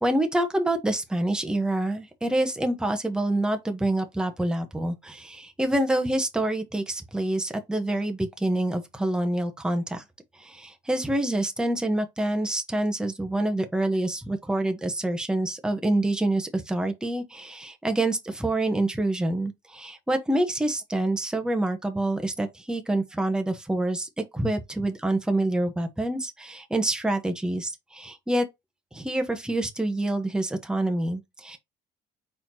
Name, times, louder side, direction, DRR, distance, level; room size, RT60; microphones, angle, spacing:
voice 1, 0.0-10.0 10.4-28.5 28.9-31.6, right 1 dB, 5° right, 1.0 m, -27 dB
4.5 x 4.2 x 2.8 m
cardioid pair, 110°, 17 cm